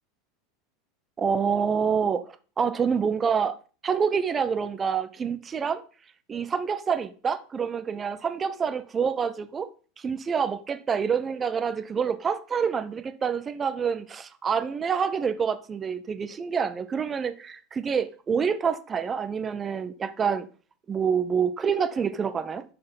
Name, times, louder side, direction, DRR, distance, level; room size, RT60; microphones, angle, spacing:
voice 1, 1.2-3.6 3.8-5.8 6.3-9.7 10.0-20.5 20.9-22.6, right 6 dB, 25° right, 0.8 m, -27 dB
5.7 x 5.5 x 5.6 m
figure-of-eight pair, 80°, 0 cm